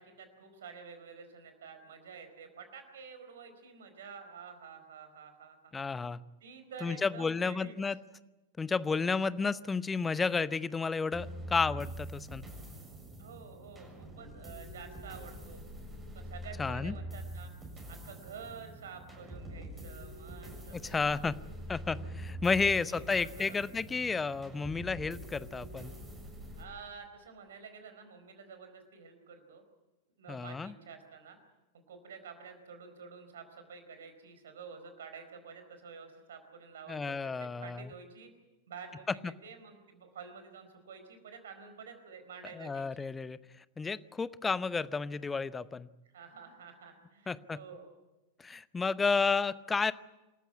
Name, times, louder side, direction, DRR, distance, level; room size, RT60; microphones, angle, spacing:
voice 1, 0.0-5.8 6.4-7.8 13.2-15.6 16.1-17.5 17.9-21.3 22.7-23.7 26.6-29.6 30.2-31.4 31.9-38.3 38.7-43.1 46.1-47.9, right 6 dB, 60° right, 8 dB, 4.5 m, -50 dB
voice 2, 5.7-6.2 6.8-8.0 8.6-12.4 16.6-16.9 20.7-21.3 21.7-25.9 30.3-30.7 36.9-37.8 42.5-43.4 43.8-45.9 47.3-47.6 48.4-49.9, left 4 dB, 15° left, 17 dB, 0.8 m, -32 dB
sound 1, 11.1-26.6, right 1 dB, 10° right, 7.2 m, -45 dB
27.5 x 14.0 x 9.7 m, 1.0 s
figure-of-eight pair, 90°, 0 cm